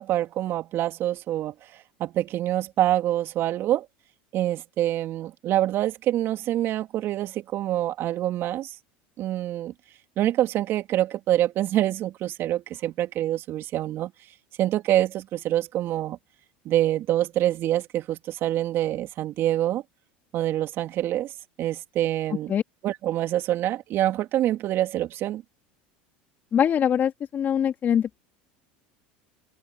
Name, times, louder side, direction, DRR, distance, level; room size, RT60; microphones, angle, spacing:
voice 1, 0.0-3.9 4.3-8.8 9.2-9.7 10.2-14.1 14.6-16.2 16.6-19.8 20.3-21.3 21.6-22.5 22.8-25.4, right 13 dB, 50° right, 2.7 m, -26 dB
voice 2, 26.5-28.2, left 9 dB, 40° left, 2.8 m, -23 dB
hypercardioid pair, 90°, 5 cm